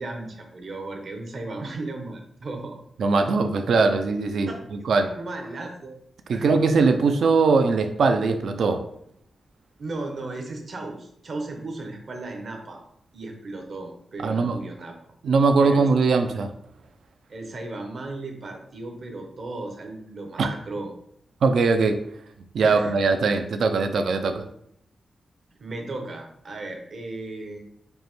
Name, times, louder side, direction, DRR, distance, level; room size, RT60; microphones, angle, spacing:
voice 1, 0.0-2.8 4.5-4.6 5.0-6.0 6.3-6.6 9.8-12.8 13.1-14.9 15.6-15.9 17.3-20.9 22.6-23.3 25.6-27.6, right 2 dB, 60° right, 2 dB, 0.8 m, -35 dB
voice 2, 3.0-4.5 4.9-5.1 6.3-8.8 14.2-14.6 15.2-16.5 20.4-20.6 21.4-22.0 22.5-24.4, right 4 dB, 80° right, 7 dB, 0.3 m, -21 dB
5.1 x 2.1 x 3.0 m, 0.72 s
cardioid pair, 85°, 0 cm